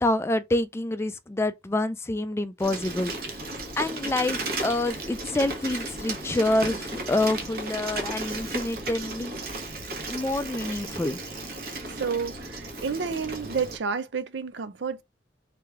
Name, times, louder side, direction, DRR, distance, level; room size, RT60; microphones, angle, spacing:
voice 1, 0.0-9.4 10.1-11.2, left 2 dB, 15° left, 0.3 m, -27 dB
Bicycle, 2.6-13.8, right 2 dB, 55° right, 1.2 m, -34 dB
voice 2, 11.9-15.0, right 5 dB, 90° right, 0.6 m, -30 dB
3.4 x 3.1 x 4.7 m
head